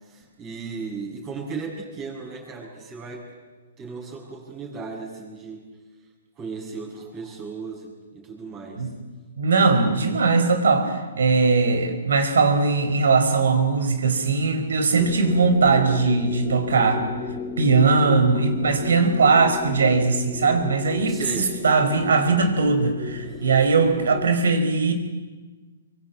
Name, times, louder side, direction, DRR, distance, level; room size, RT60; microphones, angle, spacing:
voice 1, 0.0-3.3 3.8-5.7 6.4-8.9 21.1-21.5 23.3-23.5, right 4 dB, 25° right, 0 dB, 7.3 m, -36 dB
voice 2, 9.4-17.0 17.6-24.9, right 4 dB, 80° right, 8 dB, 4.9 m, -20 dB
sound 1, 15.0-24.3, left 7 dB, 25° left, 2.0 m, -35 dB
25.0 x 24.0 x 8.7 m, 1.3 s
hypercardioid pair, 145°, 0 cm